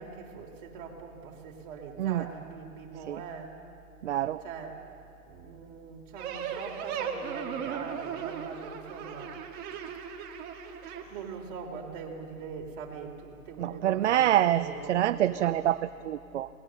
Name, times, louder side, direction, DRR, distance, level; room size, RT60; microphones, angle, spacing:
voice 1, 0.0-3.5 4.4-4.7 5.3-9.4 11.1-15.6, right 5 dB, 35° right, 2 dB, 3.6 m, -42 dB
voice 2, 4.0-4.4 13.6-16.5, right 12 dB, 55° right, 13 dB, 0.6 m, -26 dB
sound 1, 6.2-11.0, right 7 dB, 20° right, 1.7 m, -37 dB
28.0 x 20.5 x 6.6 m, 2.6 s
hypercardioid pair, 150°, 44 cm